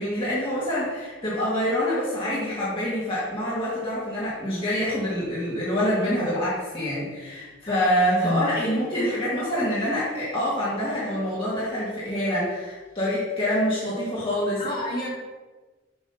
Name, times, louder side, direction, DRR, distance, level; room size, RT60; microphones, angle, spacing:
voice 1, 0.0-14.6, equal, 25° left, -9 dB, 1.6 m, -26 dB
voice 2, 8.2-8.5 14.6-15.1, left 1 dB, 45° left, -6 dB, 2.1 m, -28 dB
7.1 x 3.1 x 5.6 m, 1.3 s
head